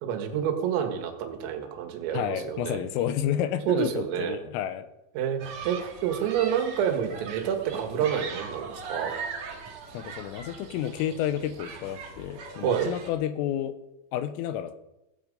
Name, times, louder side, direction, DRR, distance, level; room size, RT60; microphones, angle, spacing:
voice 1, 0.0-2.8 3.7-4.4 5.2-9.1 12.6-12.9, right 9 dB, 90° right, 5 dB, 4.4 m, -28 dB
voice 2, 2.1-4.9 9.9-13.8 14.1-14.7, left 10 dB, 85° left, 11 dB, 3.6 m, -30 dB
Human group actions, 5.4-13.1, right 5 dB, 50° right, 2.2 m, -40 dB
16.5 x 15.0 x 5.4 m, 0.93 s
omnidirectional pair, 5.8 m